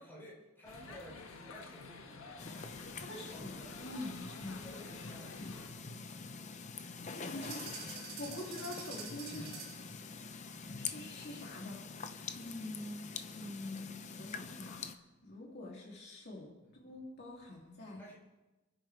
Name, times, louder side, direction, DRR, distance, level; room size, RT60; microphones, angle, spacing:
voice 1, 0.0-4.3 4.6-6.1 7.1-8.6 9.3-9.8 16.6-16.8 17.9-18.2, equal, 10° left, -5 dB, 4.3 m, -56 dB
sound 1, 0.6-5.7, left 3 dB, 75° left, 1.7 m, -51 dB
sound 2, 2.4-15.0, left 5 dB, 35° left, 0.7 m, -45 dB
voice 2, 3.0-4.7 7.0-7.6 8.2-9.5 10.1-10.3 10.6-11.8 12.3-16.5 16.8-18.0, left 1 dB, 50° left, -3 dB, 3.0 m, -45 dB
sound 3, 7.4-9.9, right 6 dB, 85° right, 2.7 m, -47 dB
28.0 x 9.9 x 3.4 m, 1.1 s
head